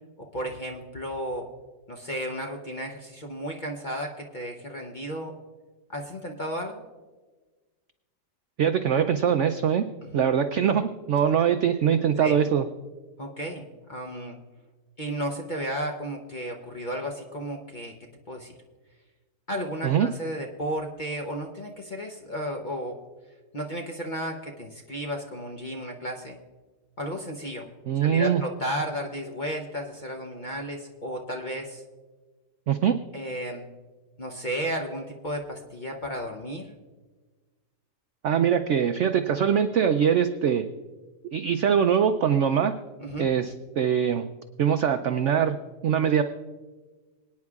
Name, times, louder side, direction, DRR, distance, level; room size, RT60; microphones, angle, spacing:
voice 1, 0.3-1.4 1.9-5.3 5.9-6.8 10.0-10.2 12.2-12.4 13.2-14.4 15.0-17.9 18.3-18.6 19.5-23.0 23.5-26.4 27.0-27.7 28.0-31.8 33.1-33.7 34.2-36.7 43.0-43.3, equal, 40° left, 1 dB, 0.7 m, -33 dB
voice 2, 8.6-9.8 10.1-12.7 19.8-20.1 27.9-28.4 32.7-33.0 38.2-40.7 41.3-42.7 43.2-44.3 44.6-45.6 45.8-46.2, right 8 dB, 75° right, 8 dB, 0.6 m, -22 dB
25.5 x 9.6 x 2.4 m, 1.3 s
omnidirectional pair, 1.8 m